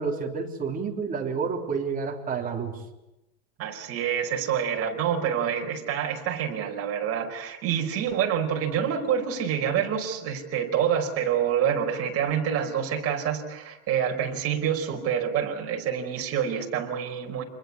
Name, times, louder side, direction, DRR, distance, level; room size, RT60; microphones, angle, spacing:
voice 1, 0.0-2.8, right 5 dB, 20° right, 1 dB, 3.7 m, -29 dB
voice 2, 3.6-17.4, right 8 dB, 35° right, 2 dB, 5.1 m, -27 dB
28.0 x 22.0 x 8.6 m, 0.93 s
supercardioid pair, 150°, 40 cm